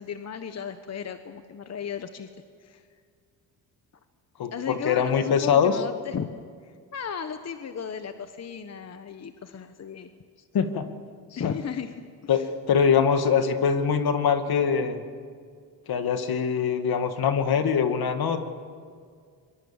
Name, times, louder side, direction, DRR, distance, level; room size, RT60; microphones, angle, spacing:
voice 1, 0.0-2.3 2.6-2.9 4.5-6.3 6.6-10.1 11.4-11.9 12.2-12.5, left 7 dB, 40° left, 8 dB, 1.2 m, -35 dB
voice 2, 4.4-5.7 10.5-10.9 11.4-11.5 12.3-15.0 15.9-18.4, left 7 dB, 60° left, 8 dB, 2.2 m, -23 dB
26.5 x 23.0 x 7.3 m, 2.1 s
cardioid pair, 95°, 41 cm